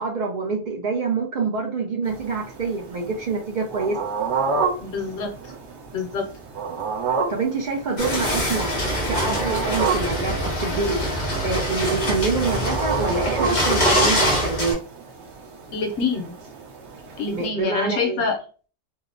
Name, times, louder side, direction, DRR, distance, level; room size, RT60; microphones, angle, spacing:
voice 1, 0.0-4.0 7.3-8.7 9.1-11.0 11.4-14.8 17.3-18.2, right 4 dB, 55° right, 0 dB, 0.5 m, -26 dB
sound 1, 2.0-17.5, right 5 dB, 85° right, 1.1 m, -31 dB
voice 2, 4.8-5.5 5.9-6.2 15.7-16.3 17.2-18.4, left 4 dB, 80° left, 2 dB, 1.0 m, -26 dB
sound 2, 8.0-14.7, equal, 45° left, 1.0 m, -24 dB
2.7 x 2.0 x 2.5 m, 0.39 s
omnidirectional pair, 1.1 m